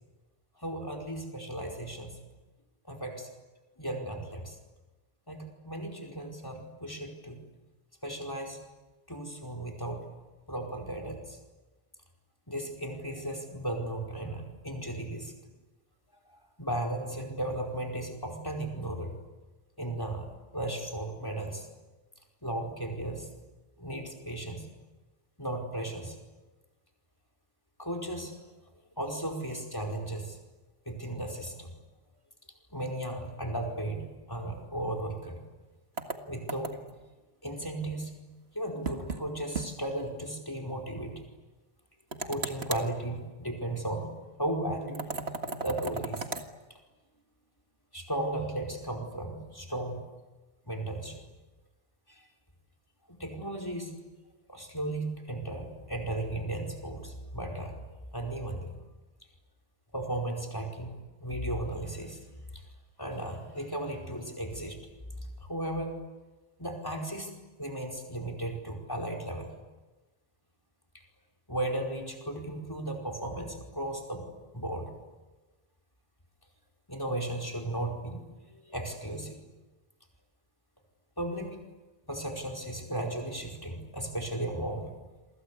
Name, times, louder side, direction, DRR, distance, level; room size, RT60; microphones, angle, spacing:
voice 1, 0.6-2.2 2.8-3.3 3.8-4.6 5.3-7.4 8.0-8.6 9.1-10.1 10.5-11.4 12.5-15.3 16.6-19.2 19.8-20.3 20.5-21.7 22.4-23.3 23.8-24.7 25.4-26.2 27.8-28.4 29.0-30.4 30.8-31.7 32.7-35.4 36.3-36.8 37.4-38.1 38.5-41.1 42.2-44.1 44.4-45.1 45.6-46.3 46.7-46.8 47.9-50.0 50.6-51.2 52.1-52.3 53.2-53.9 54.5-57.8 58.1-58.7 59.9-62.2 62.5-62.6 63.0-64.8 65.2-65.9 66.6-69.5 71.5-74.2 74.5-74.9 76.9-79.4 81.2-81.6 82.0-84.9, right 1 dB, 20° left, 4 dB, 4.9 m, -35 dB
sound 1, 36.0-37.0 38.8-39.2 39.5-39.7 40.0-40.1 42.1-42.9 44.9-46.5, right 3 dB, 85° right, 2.2 m, -36 dB
29.0 x 24.0 x 8.4 m, 1.2 s
omnidirectional pair, 1.0 m